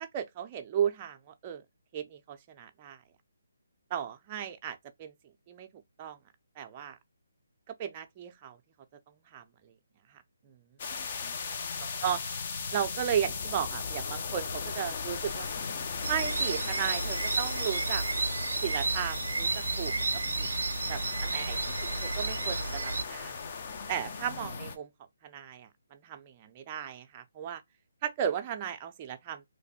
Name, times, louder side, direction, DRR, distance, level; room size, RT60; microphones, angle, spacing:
voice 1, 0.0-1.6 1.9-3.0 3.9-5.1 5.5-5.7 6.0-6.2 6.6-7.0 7.7-8.6 9.3-9.7 10.1-10.6 12.0-12.2 12.7-15.5 16.1-18.0 18.6-19.9 20.4-20.5 20.9-21.6 22.0-23.4 23.9-24.9 25.2-27.6 28.0-29.4, right 9 dB, 25° right, 0.5 m, -35 dB
sound 1, 10.8-24.8, left 5 dB, 40° left, 0.7 m, -37 dB
sound 2, 16.0-23.0, right 3 dB, 80° right, 0.4 m, -32 dB
3.2 x 2.1 x 4.1 m
figure-of-eight pair, 155°, 0 cm